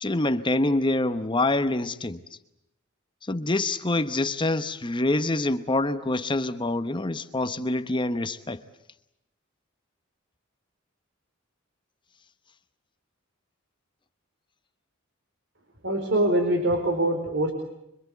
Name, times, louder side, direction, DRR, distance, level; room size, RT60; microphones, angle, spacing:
voice 1, 0.0-2.2 3.2-8.6, left 2 dB, 25° left, 1.0 m, -26 dB
voice 2, 15.8-17.5, right 1 dB, 60° right, 4.2 m, -23 dB
25.5 x 25.0 x 8.3 m
head